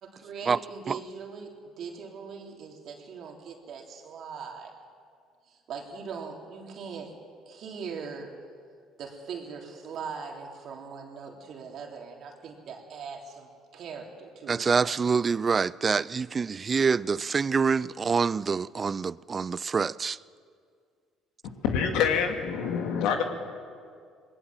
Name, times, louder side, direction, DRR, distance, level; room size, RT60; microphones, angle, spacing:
voice 1, 0.0-4.7 5.5-7.1 7.5-8.3 9.0-15.0, right 5 dB, 60° right, 3.4 m, -41 dB
voice 2, 14.5-20.2, right 5 dB, 35° right, 0.4 m, -26 dB
voice 3, 21.6-23.2, left 7 dB, 75° left, 2.3 m, -26 dB
20.0 x 18.5 x 7.5 m
supercardioid pair, 70°, 0 cm